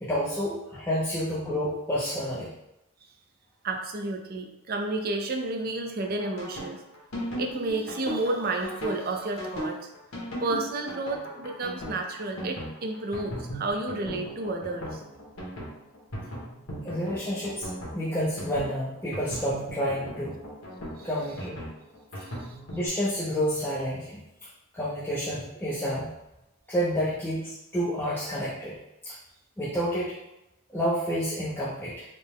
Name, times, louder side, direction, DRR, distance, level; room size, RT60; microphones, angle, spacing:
voice 1, 0.0-2.5 16.8-17.7 17.9-20.3 21.0-21.7 22.7-24.2 24.7-26.1 26.7-28.8 29.0-29.2 29.6-30.1 30.7-32.0, equal, 10° left, -9 dB, 0.5 m, -29 dB
voice 2, 3.6-6.8 7.4-9.8 10.4-15.0 21.0-21.1 22.3-22.4, right 2 dB, 45° right, 3 dB, 0.4 m, -31 dB
sound 1, 6.0-22.8, equal, 80° left, 1.3 m, -37 dB
4.0 x 2.1 x 3.5 m, 0.90 s
head